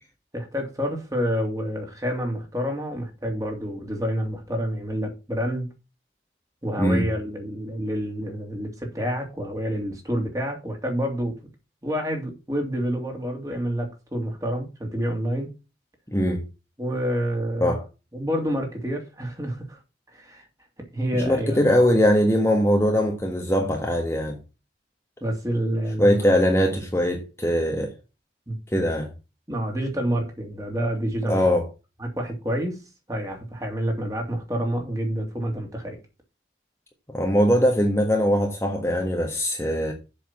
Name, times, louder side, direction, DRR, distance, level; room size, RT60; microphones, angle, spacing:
voice 1, 0.3-5.7 6.6-11.4 11.8-15.5 16.8-17.7 18.1-19.8 20.1-20.4 20.9-21.6 25.2-26.2 28.5-28.6 29.5-31.4 32.0-32.8 33.1-36.0, equal, 20° right, 2.6 m, -28 dB
voice 2, 16.1-16.4 17.6-17.8 21.1-24.4 26.0-27.9 28.7-29.1 31.3-31.7 37.1-39.9, equal, 15° left, 1.4 m, -21 dB
7.8 x 6.5 x 7.2 m
head